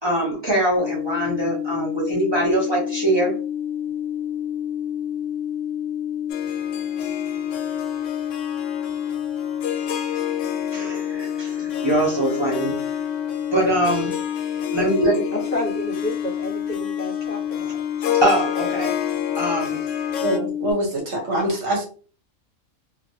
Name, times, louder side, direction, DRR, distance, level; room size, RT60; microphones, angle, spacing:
voice 1, 0.0-3.3 10.7-12.8 13.5-14.1 14.7-15.2 18.1-18.9 19.4-19.8, right 1 dB, 25° right, -5 dB, 0.9 m, -22 dB
sound 1, 0.8-20.7, left 9 dB, 45° right, 0.6 m, -28 dB
Harp, 6.3-20.4, left 9 dB, 75° left, 0.9 m, -31 dB
voice 2, 15.3-17.8, left 1 dB, 35° left, -6 dB, 1.3 m, -30 dB
voice 3, 20.2-21.8, equal, 65° right, 0 dB, 1.1 m, -24 dB
2.9 x 2.5 x 2.7 m, 0.40 s
omnidirectional pair, 1.3 m